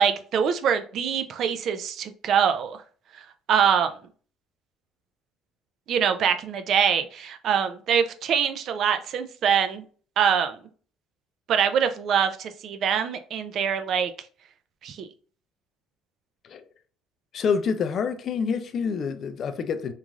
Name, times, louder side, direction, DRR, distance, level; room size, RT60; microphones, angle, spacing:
voice 1, 0.0-2.8 3.5-3.9 5.9-9.8 10.2-10.6 11.5-14.1 14.8-15.1, right 7 dB, 60° right, 0.3 m, -24 dB
voice 2, 17.3-19.9, left 6 dB, 50° left, 0.4 m, -27 dB
3.0 x 2.5 x 2.4 m
cardioid pair, 100°, 0 cm